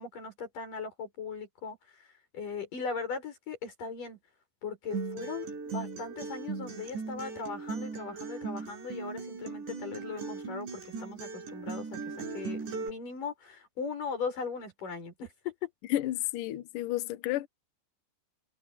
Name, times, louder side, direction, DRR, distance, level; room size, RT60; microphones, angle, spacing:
voice 1, 0.0-4.2 4.6-5.5 5.7-15.7, left 5 dB, 45° left, 8.1 m, -39 dB
Acoustic guitar, 4.9-12.9, right 4 dB, 65° right, 8.4 m, -38 dB
voice 2, 15.9-17.5, left 15 dB, 80° left, 1.9 m, -31 dB
omnidirectional pair, 5.5 m